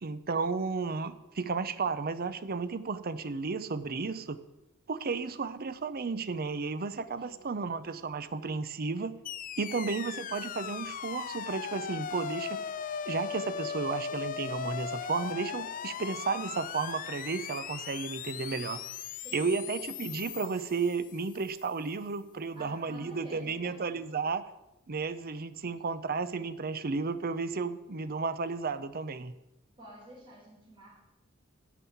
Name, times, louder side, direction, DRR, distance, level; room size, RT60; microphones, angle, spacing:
voice 1, 0.0-4.4 4.9-9.2 9.6-12.6 13.1-18.8 19.3-24.4 24.9-29.3, right 4 dB, 45° right, 12 dB, 0.6 m, -33 dB
voice 2, 7.2-7.5 19.2-19.5 22.5-24.0 29.8-31.0, right 1 dB, 25° right, -8 dB, 4.1 m, -50 dB
sound 1, 9.2-21.5, left 8 dB, 40° left, 0.3 m, -38 dB
9.1 x 6.2 x 8.5 m, 0.94 s
head